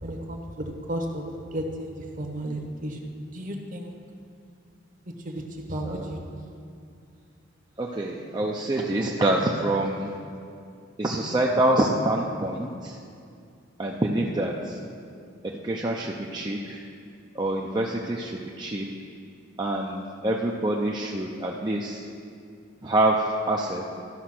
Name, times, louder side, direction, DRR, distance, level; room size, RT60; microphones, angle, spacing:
voice 1, 0.0-1.2 1.5-3.9 5.2-5.4 5.7-6.5, right 1 dB, 45° right, 3 dB, 1.1 m, -33 dB
voice 2, 7.8-10.2 11.0-13.0 13.8-14.8 15.4-16.8 17.3-18.9 19.6-22.1 22.8-23.8, right 1 dB, 20° right, -2 dB, 0.5 m, -26 dB
13.0 x 5.6 x 6.0 m, 2.4 s
head